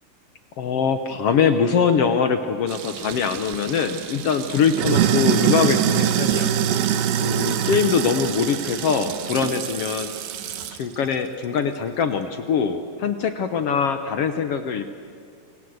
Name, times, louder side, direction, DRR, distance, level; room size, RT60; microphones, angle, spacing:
voice 1, 0.6-6.5 7.2-10.1 10.7-14.9, left 6 dB, 65° left, 9 dB, 1.5 m, -23 dB
Sink (filling or washing), 2.7-10.8, right 9 dB, 85° right, 3.0 m, -24 dB
29.0 x 23.5 x 8.0 m, 2.2 s
omnidirectional pair, 4.0 m